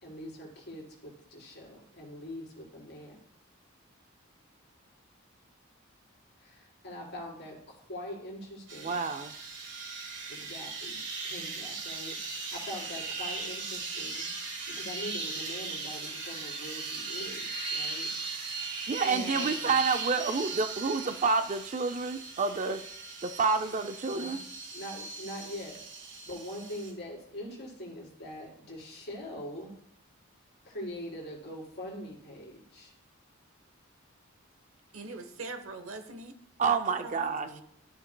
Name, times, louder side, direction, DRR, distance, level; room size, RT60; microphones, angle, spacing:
voice 1, 0.0-3.2 6.4-9.0 10.3-14.3 14.7-18.3 19.0-19.8 24.1-24.4 24.7-29.7 30.6-32.9 37.2-37.6, equal, 55° left, -3 dB, 3.9 m, -43 dB
sound 1, 8.7-26.9, right 4 dB, 55° right, 1.7 m, -38 dB
voice 2, 8.8-9.3 18.9-22.8 23.2-24.4 36.6-37.5, right 4 dB, 35° right, 8 dB, 0.4 m, -29 dB
voice 3, 34.9-36.3 36.6-37.5, right 3 dB, 80° right, 9 dB, 1.0 m, -42 dB
13.5 x 6.9 x 2.2 m, 0.70 s
head